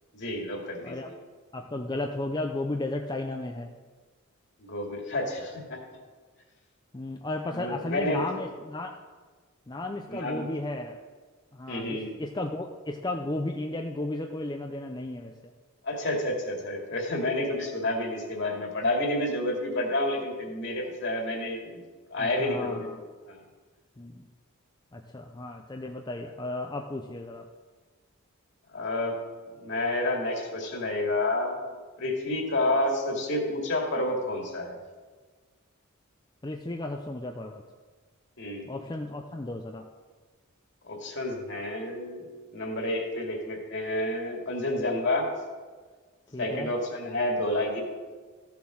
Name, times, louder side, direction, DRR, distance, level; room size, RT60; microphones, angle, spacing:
voice 1, 0.1-1.1 4.6-5.8 7.5-8.2 10.1-10.5 11.7-12.1 15.8-21.8 22.1-22.9 23.3-23.4 28.7-29.2 29.5-31.6 32.0-34.8 38.4-38.7 40.8-42.3 42.5-45.3 46.4-47.8, left 1 dB, 55° left, 1 dB, 2.4 m, -29 dB
voice 2, 1.5-3.7 6.9-8.9 9.7-11.0 11.5-15.3 22.2-23.0 24.0-24.3 24.9-27.5 36.4-37.6 38.7-39.9 46.3-46.7, left 2 dB, 20° left, 3 dB, 0.6 m, -34 dB
14.5 x 7.1 x 6.4 m, 1.4 s
head